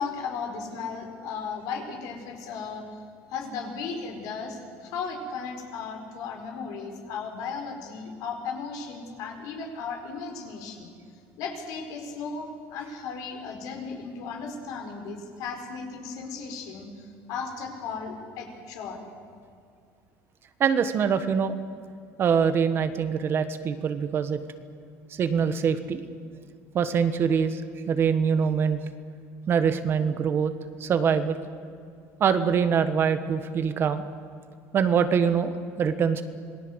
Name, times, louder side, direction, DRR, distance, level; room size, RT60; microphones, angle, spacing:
voice 1, 0.0-2.8 3.3-10.9 11.4-19.0, left 5 dB, 70° left, 3 dB, 4.8 m, -35 dB
voice 2, 20.6-21.6 22.2-24.4 25.2-26.0 26.7-27.6 27.9-28.8 29.5-30.5 30.8-31.4 32.2-34.0 34.7-36.2, right 7 dB, 40° right, 10 dB, 1.4 m, -24 dB
27.0 x 19.0 x 8.1 m, 2.3 s
cardioid pair, 135°, 6 cm